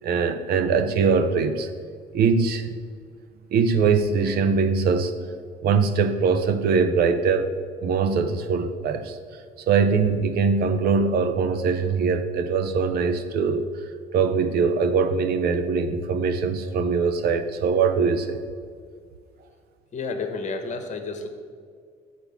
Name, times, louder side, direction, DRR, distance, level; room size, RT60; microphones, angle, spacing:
voice 1, 0.0-1.7 2.1-2.8 3.5-5.2 5.6-7.5 7.8-9.2 9.7-13.7 14.1-18.4, right 5 dB, 65° right, 9 dB, 0.8 m, -22 dB
voice 2, 19.9-21.3, left 4 dB, 45° left, 6 dB, 1.2 m, -30 dB
8.2 x 4.3 x 7.2 m, 2.1 s
cardioid pair, 110°, 17 cm